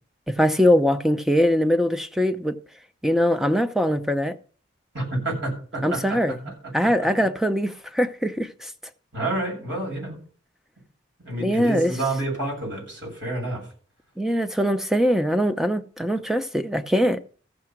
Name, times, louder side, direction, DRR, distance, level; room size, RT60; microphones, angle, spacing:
voice 1, 0.3-2.6 3.0-4.4 5.8-8.7 11.4-11.9 14.2-17.2, equal, ahead, 0.6 m, -22 dB
voice 2, 4.9-6.2 6.4-6.5 9.1-10.2 11.2-13.7, right 2 dB, 60° right, 7.6 m, -29 dB
14.5 x 6.7 x 6.0 m
head